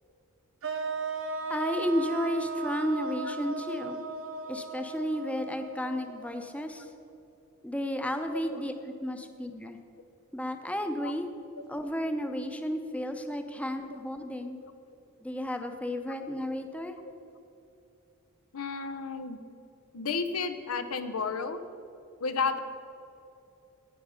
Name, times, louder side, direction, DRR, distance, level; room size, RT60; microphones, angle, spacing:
sound 1, 0.6-6.7, right 4 dB, 70° right, 1.1 m, -37 dB
voice 1, 1.5-4.0 4.5-6.9 7.6-9.8 10.3-11.3 11.7-14.6 15.2-17.0, equal, 5° left, 6 dB, 0.7 m, -32 dB
voice 2, 18.5-19.4 19.9-21.6 22.2-22.6, left 5 dB, 85° left, 9 dB, 0.7 m, -32 dB
10.0 x 9.1 x 5.6 m, 2.6 s
head